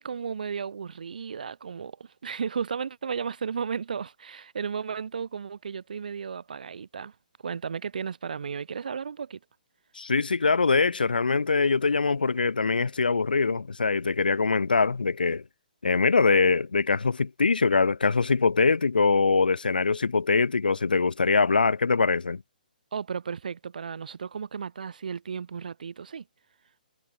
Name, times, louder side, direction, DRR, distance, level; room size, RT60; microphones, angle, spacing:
voice 1, 0.0-7.1 7.4-9.4 22.9-26.2, right 6 dB, 65° right, 0.9 m, -34 dB
voice 2, 10.0-15.4 15.8-22.4, left 4 dB, 75° left, 0.5 m, -23 dB
figure-of-eight pair, 125°, 5 cm